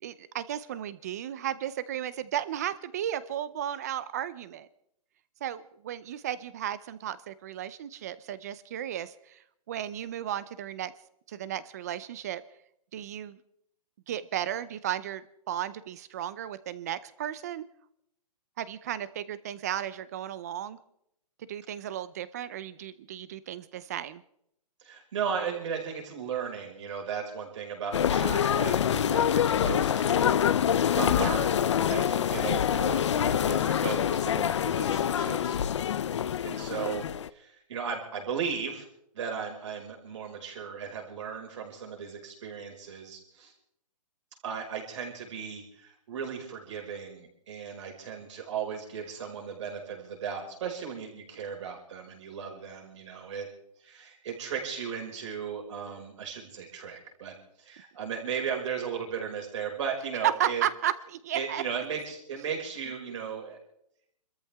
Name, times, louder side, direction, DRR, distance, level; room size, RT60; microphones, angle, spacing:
voice 1, 0.0-4.7 5.4-10.9 11.3-12.4 12.9-13.4 14.1-17.6 18.6-20.8 21.5-24.2 60.2-61.6, right 11 dB, 25° right, 16 dB, 0.6 m, -34 dB
voice 2, 24.8-35.5 36.4-38.9 39.1-43.5 44.4-53.5 53.8-60.6 61.3-63.6, right 7 dB, 45° right, 1 dB, 5.3 m, -36 dB
sound 1, 27.9-37.3, left 9 dB, 45° left, 0.6 m, -26 dB
28.5 x 14.0 x 3.5 m, 0.75 s
hypercardioid pair, 165°, 21 cm